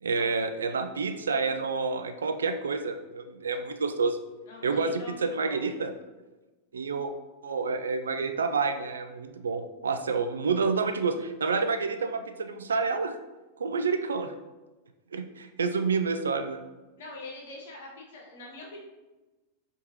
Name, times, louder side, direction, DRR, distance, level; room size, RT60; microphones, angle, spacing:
voice 1, 0.0-4.2 4.6-5.9 6.7-7.1 7.4-13.2 13.6-14.3 15.1-16.6, right 4 dB, 70° right, 8 dB, 0.3 m, -29 dB
voice 2, 4.5-5.7 17.0-18.8, left 2 dB, 55° left, -1 dB, 1.1 m, -44 dB
4.4 x 3.5 x 2.9 m, 1.1 s
figure-of-eight pair, 90°, 0 cm